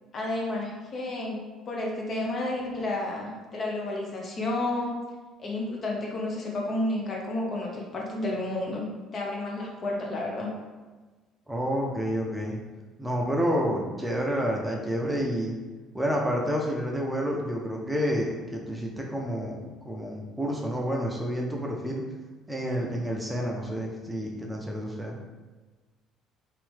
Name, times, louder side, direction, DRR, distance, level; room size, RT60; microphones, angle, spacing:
voice 1, 0.1-1.4 1.7-5.0 5.4-8.9 9.1-10.5, left 2 dB, 40° left, -1 dB, 0.7 m, -31 dB
voice 2, 11.5-12.6 13.0-15.6 15.9-22.0 22.5-25.2, equal, 10° right, -1 dB, 0.6 m, -29 dB
2.8 x 2.6 x 3.4 m, 1.3 s
figure-of-eight pair, 55°, 0 cm